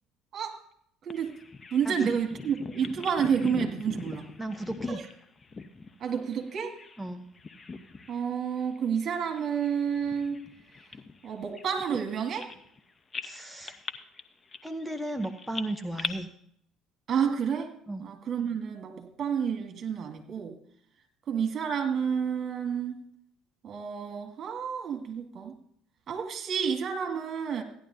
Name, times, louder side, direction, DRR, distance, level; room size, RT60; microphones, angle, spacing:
Bird vocalization bird call bird song, 1.1-7.1 7.3-8.3 8.6-8.8 9.4-12.8 13.1-16.1, left 4 dB, 30° left, 1.0 m, -41 dB
voice 1, 1.7-4.3 6.0-6.8 8.1-10.4 11.2-12.5 17.1-17.7 18.0-20.6 21.3-23.0 23.6-25.6 26.1-27.6, right 7 dB, 45° right, 4 dB, 2.2 m, -30 dB
voice 2, 4.4-5.0 7.0-7.3 13.2-13.8 14.6-16.3 17.9-18.0, right 1 dB, ahead, 5 dB, 0.9 m, -35 dB
16.0 x 11.0 x 2.7 m, 0.68 s
hypercardioid pair, 60°, 0 cm